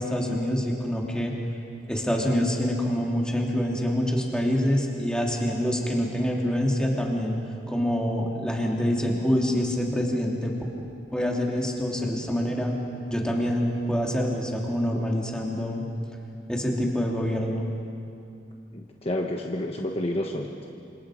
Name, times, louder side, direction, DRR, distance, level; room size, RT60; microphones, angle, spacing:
voice 1, 0.0-1.3 1.9-7.4 7.7-10.5 11.1-12.7 13.1-15.8 16.5-17.6, equal, 5° left, -2 dB, 3.0 m, -26 dB
voice 2, 18.7-20.7, left 1 dB, 35° left, 1 dB, 1.2 m, -30 dB
28.0 x 27.0 x 5.0 m, 2.5 s
head